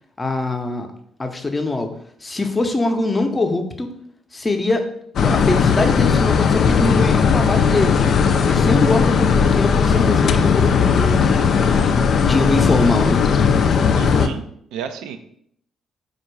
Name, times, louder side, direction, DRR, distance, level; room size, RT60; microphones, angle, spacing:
voice 1, 0.2-0.9 1.2-1.9 2.2-3.9 4.3-4.8 5.2-8.1 8.4-13.2, left 2 dB, 25° left, 5 dB, 0.7 m, -23 dB
sound 1, 5.2-14.3, left 6 dB, 55° left, 0.3 m, -17 dB
voice 2, 14.0-14.4 14.7-15.2, right 8 dB, 65° right, 9 dB, 0.4 m, -31 dB
4.4 x 2.4 x 4.6 m, 0.67 s
figure-of-eight pair, 45°, 0 cm